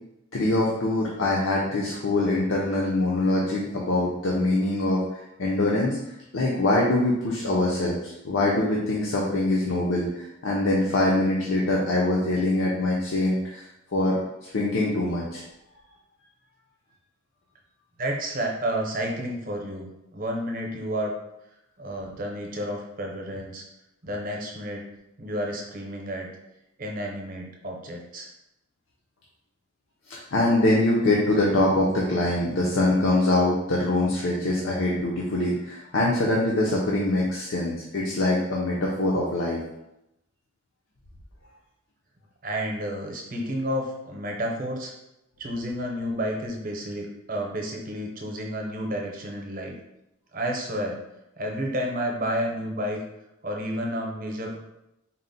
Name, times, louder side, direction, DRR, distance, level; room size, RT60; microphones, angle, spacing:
voice 1, 0.3-5.0 5.4-6.0 6.3-13.7 13.9-15.4 30.1-39.6, left 2 dB, 80° left, -3 dB, 0.6 m, -24 dB
voice 2, 18.0-21.1 21.8-23.6 24.0-24.8 25.2-26.3 26.8-28.3 42.4-44.9 45.4-49.7 50.3-51.0 51.4-53.0 53.4-54.6, equal, 45° right, 0 dB, 0.7 m, -31 dB
4.0 x 2.1 x 4.0 m, 0.87 s
head